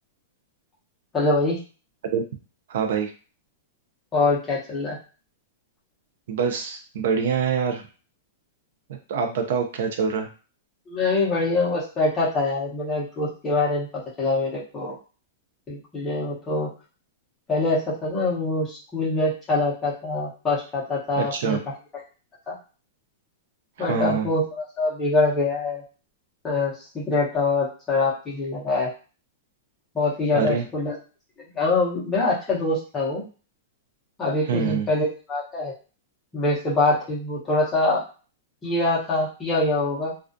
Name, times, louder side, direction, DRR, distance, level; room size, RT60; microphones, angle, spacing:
voice 1, 1.1-1.6 4.1-5.0 10.9-13.9 14.2-14.9 15.7-16.7 17.5-21.7 22.5-22.6 23.8-25.8 26.4-28.9 29.9-31.0 31.5-33.2 34.2-35.7 36.3-38.1 38.6-40.1, left 2 dB, 10° left, -6 dB, 0.7 m, -24 dB
voice 2, 2.7-3.1 6.3-7.8 9.1-10.3 21.2-21.6 23.8-24.3 30.3-30.7 34.5-34.9, right 6 dB, 60° right, 4 dB, 0.4 m, -25 dB
2.3 x 2.2 x 2.5 m, 0.36 s
supercardioid pair, 170°, 0 cm